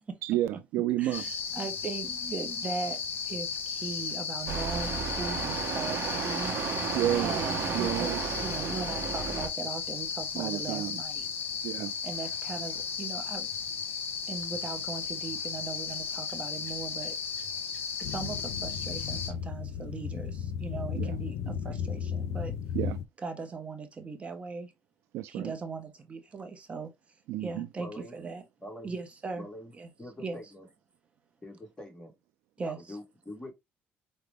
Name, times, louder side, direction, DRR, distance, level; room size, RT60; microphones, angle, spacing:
voice 1, 0.2-1.4 6.9-7.3 7.7-8.2 10.4-11.0 11.6-11.9 20.9-21.2 21.5-21.6 22.7-23.0 25.1-25.5 27.3-27.7, right 13 dB, 85° right, 0.3 m, -31 dB
voice 2, 1.0-3.0 3.3-6.5 7.2-11.6 12.0-13.5 14.3-17.1 18.0-22.5 23.2-24.7 25.3-26.9 27.4-28.4 28.8-29.5 29.7-29.9 30.2-30.4 32.6-33.0, right 4 dB, 30° right, 0.7 m, -39 dB
sound 1, 1.1-19.3, left 6 dB, 55° left, 1.1 m, -35 dB
sound 2, 4.5-9.5, right 6 dB, 65° right, 0.8 m, -33 dB
sound 3, 18.0-23.1, left 7 dB, 85° left, 0.4 m, -35 dB
voice 3, 27.8-28.1 28.6-29.0 29.4-29.7 30.0-30.7 31.4-32.1 32.6-33.5, left 1 dB, 15° left, 1.4 m, -44 dB
4.9 x 2.1 x 3.3 m
cardioid pair, 120°, 4 cm